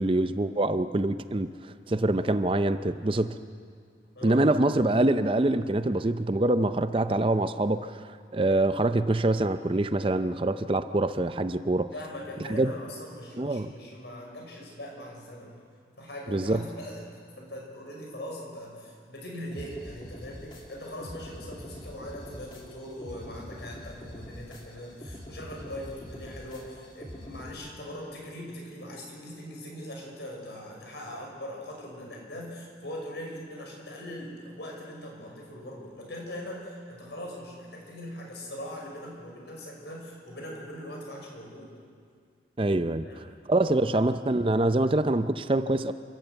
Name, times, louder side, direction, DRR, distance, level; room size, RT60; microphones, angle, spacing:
voice 1, 0.0-3.4 4.2-11.9 12.5-12.7 13.4-13.7 16.3-16.6 42.6-45.9, right 2 dB, 30° right, 11 dB, 0.5 m, -25 dB
voice 2, 4.2-4.5 11.9-15.5 16.0-17.1 17.4-41.7 43.0-43.2, left 1 dB, 75° left, -1 dB, 5.7 m, -41 dB
sound 1, 19.5-27.5, equal, 30° left, 2.1 m, -44 dB
28.5 x 12.5 x 8.1 m, 2.1 s
head